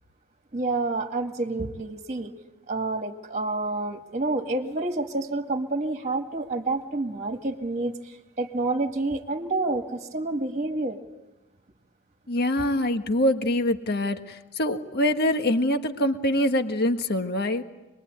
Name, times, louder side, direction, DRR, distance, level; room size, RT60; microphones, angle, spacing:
voice 1, 0.5-2.3 2.7-11.0, right 2 dB, 30° right, 5 dB, 1.9 m, -28 dB
voice 2, 12.3-17.6, left 1 dB, 45° left, 7 dB, 1.6 m, -24 dB
26.5 x 21.5 x 9.5 m, 1.0 s
head